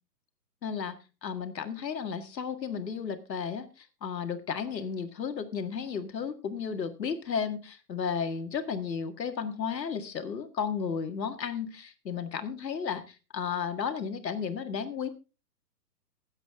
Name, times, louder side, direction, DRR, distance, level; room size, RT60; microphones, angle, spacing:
voice 1, 0.6-1.0 1.2-15.1, left 6 dB, 80° left, 7 dB, 1.9 m, -33 dB
20.5 x 8.0 x 3.5 m, 0.31 s
hypercardioid pair, 175°, 50 cm